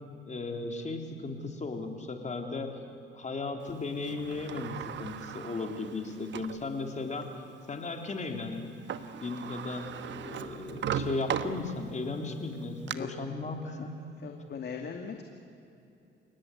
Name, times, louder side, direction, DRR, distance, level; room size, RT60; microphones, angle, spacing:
voice 1, 0.3-2.8 3.1-7.3 7.7-8.7 9.2-14.0, left 3 dB, 35° left, 4 dB, 3.4 m, -36 dB
Sliding door, 4.0-6.6 7.2-7.3 8.6-8.7 8.9-12.1 12.5-12.9, right 7 dB, 65° right, 1.3 m, -37 dB
voice 2, 14.2-15.3, left 6 dB, 55° left, 4 dB, 2.3 m, -39 dB
30.0 x 18.0 x 9.8 m, 2.7 s
cardioid pair, 90°, 20 cm